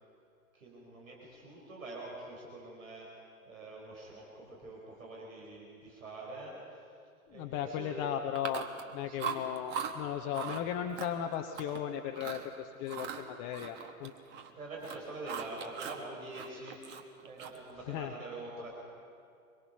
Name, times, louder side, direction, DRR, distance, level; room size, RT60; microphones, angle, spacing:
voice 1, 0.5-3.1 3.5-6.8 7.3-8.1 9.1-9.4 10.2-10.6 14.5-18.7, right 2 dB, 65° right, -2 dB, 4.8 m, -46 dB
voice 2, 7.3-14.1 17.9-18.1, left 9 dB, 20° left, 5 dB, 0.6 m, -36 dB
Chewing mastication, 8.4-8.9 9.2-9.9 10.3-10.6 11.0-11.8 12.1-12.5 12.9-14.5 14.8-16.0 16.3-17.7, right 7 dB, 25° right, 1.3 m, -40 dB
24.5 x 22.5 x 5.7 m, 2.5 s
figure-of-eight pair, 105°, 44 cm